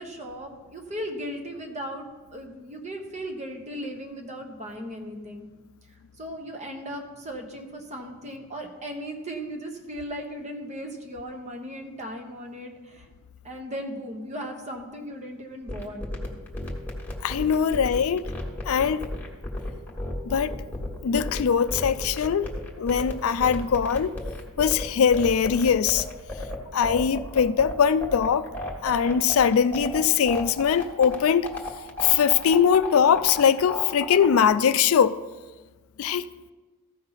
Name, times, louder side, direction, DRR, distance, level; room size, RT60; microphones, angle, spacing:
voice 1, 0.0-2.1 2.3-5.4 6.2-13.1 13.4-16.1, equal, 35° right, 1.2 m, -37 dB
sound 1, 15.7-34.4, left 1 dB, 10° left, 1.5 m, -33 dB
voice 2, 17.2-18.2 18.7-19.1 20.3-20.6 21.0-22.5 22.8-24.1 24.6-26.0 26.7-28.5 28.8-31.5 32.0-35.2 36.0-36.3, left 7 dB, 70° left, 0.4 m, -21 dB
14.5 x 5.6 x 4.0 m
head